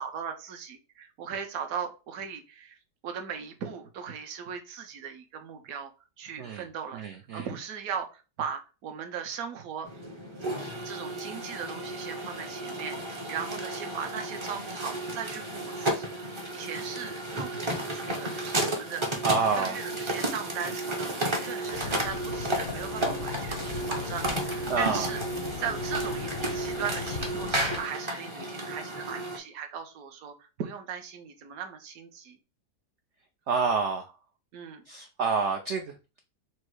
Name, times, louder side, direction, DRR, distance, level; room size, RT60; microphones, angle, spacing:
voice 1, 0.0-2.8 3.0-5.9 6.2-9.9 10.8-16.1 16.5-25.2 25.6-32.4 34.5-34.8, right 7 dB, 65° right, 5 dB, 1.1 m, -38 dB
voice 2, 6.9-7.5 19.2-19.8 24.7-25.1 33.5-34.1 34.9-36.2, right 4 dB, 85° right, 5 dB, 0.6 m, -28 dB
sound 1, 9.8-29.4, right 1 dB, 35° right, 0.5 m, -33 dB
sound 2, 21.7-27.8, left 5 dB, 65° left, 0.5 m, -38 dB
4.6 x 2.0 x 4.6 m, 0.31 s
omnidirectional pair, 1.8 m